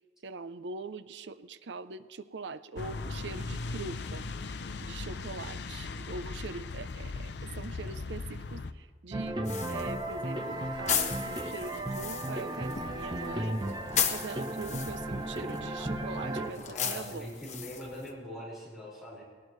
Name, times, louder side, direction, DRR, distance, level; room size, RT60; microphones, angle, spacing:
voice 1, 0.2-4.2 4.8-9.4 9.7-13.6 14.1-17.3, right 3 dB, 70° right, 13 dB, 0.5 m, -42 dB
sound 1, 2.8-8.7, left 3 dB, 65° left, 0.6 m, -38 dB
sound 2, 9.1-16.5, right 1 dB, 25° right, 0.8 m, -35 dB
sound 3, 9.5-18.1, left 8 dB, 40° left, 1.1 m, -36 dB
voice 2, 16.7-19.2, equal, ahead, -7 dB, 5.1 m, -42 dB
20.0 x 18.5 x 3.2 m, 1.5 s
head